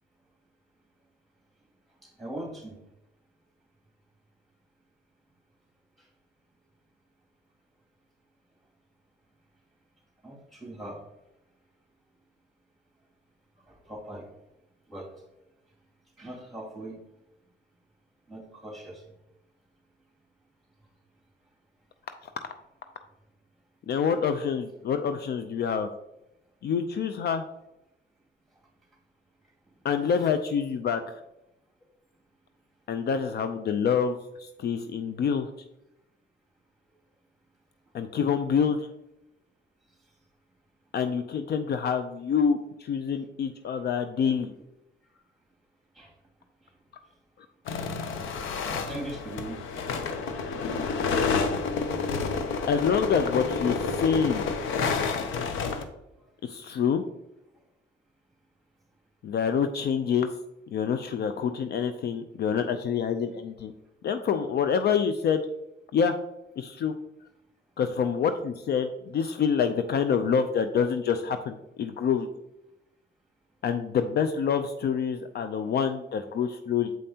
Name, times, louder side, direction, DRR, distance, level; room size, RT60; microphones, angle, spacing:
voice 1, 2.0-2.7 10.2-11.0 13.7-14.3 14.9-15.1 16.2-17.0 18.3-19.0 25.6-25.9 46.0-46.1 48.9-49.6, right 1 dB, ahead, -2 dB, 2.3 m, -40 dB
voice 2, 23.9-25.9 26.6-27.4 29.8-31.2 32.9-35.5 37.9-38.9 40.9-44.5 52.7-54.4 56.4-57.0 59.2-60.3 60.7-63.7 64.0-65.4 65.9-66.2 66.6-66.9 67.8-72.3 73.6-76.9, left 7 dB, 55° left, 9 dB, 0.4 m, -27 dB
sound 1, 47.7-55.8, left 5 dB, 85° left, 0.7 m, -29 dB
7.5 x 5.3 x 2.8 m, 0.89 s
cardioid pair, 90°, 20 cm